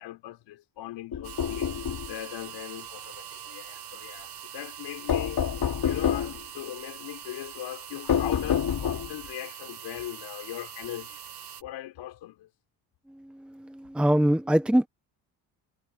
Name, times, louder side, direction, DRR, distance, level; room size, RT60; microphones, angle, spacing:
voice 1, 0.0-1.7 2.1-5.4 5.8-11.2 11.6-12.5, left 14 dB, 80° left, 4.3 m, -39 dB
sound 1, 1.1-2.1 5.1-6.4 8.1-9.2, left 8 dB, 55° left, 3.8 m, -27 dB
sound 2, 1.2-11.6, right 8 dB, 65° right, 6.4 m, -43 dB
voice 2, 13.1-14.9, right 1 dB, ahead, 1.0 m, -24 dB
cardioid pair, 85°, 42 cm